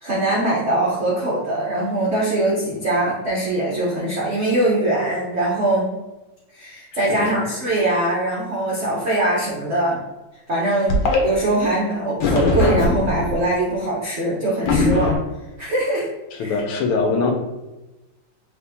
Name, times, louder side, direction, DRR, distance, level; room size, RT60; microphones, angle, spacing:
voice 1, 0.0-5.9 6.5-10.0 10.5-15.1 15.6-16.1 16.4-16.6, right 1 dB, 70° right, -5 dB, 0.6 m, -22 dB
voice 2, 7.0-7.4 16.4-17.3, left 4 dB, 90° left, 4 dB, 1.6 m, -22 dB
sound 1, 10.9-11.2 12.2-13.3 14.7-15.2, left 3 dB, 70° left, 1.5 m, -19 dB
4.2 x 2.9 x 3.5 m, 1.0 s
omnidirectional pair, 2.4 m